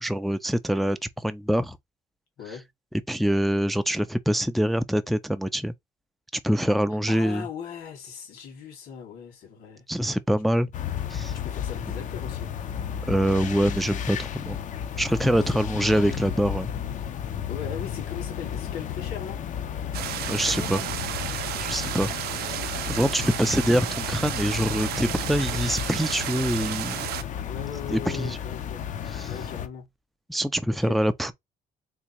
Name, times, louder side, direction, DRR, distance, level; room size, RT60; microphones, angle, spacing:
voice 1, 0.0-1.8 3.1-5.7 6.4-7.4 9.9-10.7 11.1-11.3 13.1-14.6 15.0-16.7 20.3-20.8 21.6-22.1 22.5-27.1 27.9-28.4 29.1-29.3 30.3-31.3, equal, ahead, 0.3 m, -25 dB
voice 2, 2.4-2.7 7.1-9.9 11.3-12.5 15.3-15.7 17.5-19.5 20.5-20.7 27.4-28.8 29.2-29.9 30.7-31.0, left 7 dB, 65° left, 2.1 m, -39 dB
sound 1, 10.7-29.7, left 9 dB, 50° left, 0.5 m, -33 dB
sound 2, 19.9-27.2, right 12 dB, 65° right, 0.5 m, -32 dB
3.6 x 2.6 x 2.9 m
cardioid pair, 110°, 17 cm